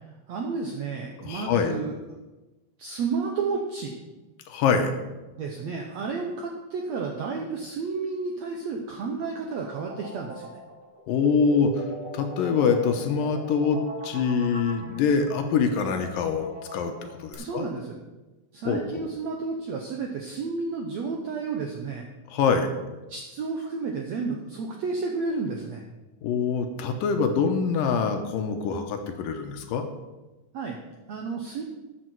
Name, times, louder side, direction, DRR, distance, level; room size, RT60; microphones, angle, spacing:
voice 1, 0.3-2.1 2.8-4.0 5.4-10.5 17.4-18.0 18.5-22.0 23.1-25.8 30.5-30.8 31.1-31.6, right 4 dB, 75° right, 1 dB, 1.6 m, -31 dB
voice 2, 1.2-1.7 4.5-4.9 11.1-11.9 12.1-16.9 17.2-17.6 18.7-19.0 22.3-22.7 26.2-29.8, left 5 dB, 75° left, 6 dB, 2.4 m, -24 dB
sound 1, 8.9-17.3, right 1 dB, 30° right, 1.0 m, -41 dB
13.0 x 8.5 x 4.6 m, 1.1 s
omnidirectional pair, 4.4 m